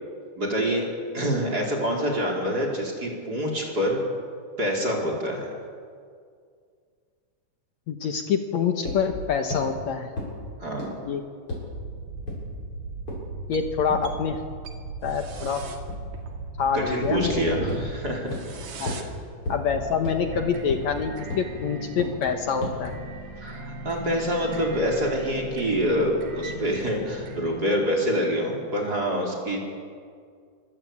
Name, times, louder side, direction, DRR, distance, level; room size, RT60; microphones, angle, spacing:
voice 1, 0.4-0.9 1.1-4.0 4.6-5.5 10.6-10.9 16.7-18.4 18.8-19.0 23.4-29.6, equal, 30° right, -1 dB, 5.1 m, -26 dB
voice 2, 7.9-10.1 11.1-11.2 13.5-14.4 15.0-15.6 16.6-17.7 18.8-19.0 19.5-22.9 24.4-24.6, left 6 dB, 65° left, 5 dB, 2.4 m, -26 dB
sound 1, 8.9-9.0 9.5-9.6 10.2-10.3 10.8-10.9 11.5-11.6 12.3-12.4 13.1-13.2 13.9-14.0 15.9-16.0 17.0-17.1 17.7-17.8 18.3-18.4 18.9-19.0 19.5-19.6 20.1-20.2 20.7-20.8 21.3-21.4 22.0-22.1 22.6-22.7, left 2 dB, 40° left, 8.5 m, -30 dB
sound 2, 11.7-27.6, right 3 dB, 60° right, 3.5 m, -38 dB
25.5 x 24.5 x 8.6 m, 2.1 s
omnidirectional pair, 3.7 m